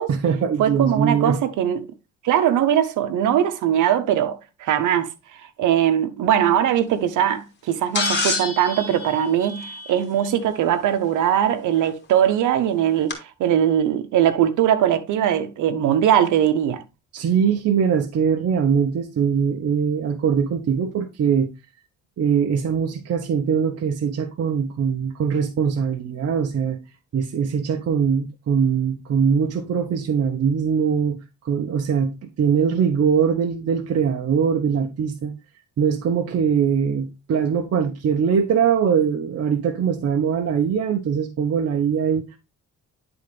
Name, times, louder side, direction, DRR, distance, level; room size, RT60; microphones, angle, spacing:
voice 1, 0.1-1.4 17.1-21.5 22.2-26.8 27.1-35.3 35.8-42.4, right 7 dB, 55° right, 0.9 m, -22 dB
voice 2, 0.6-1.9 2.2-5.1 5.6-16.8, right 10 dB, 80° right, 1.0 m, -20 dB
sound 1, 7.9-10.3 11.8-11.9 13.1-13.2, left 3 dB, 35° left, 2.4 m, -27 dB
10.0 x 3.9 x 3.4 m
cardioid pair, 90°, 30 cm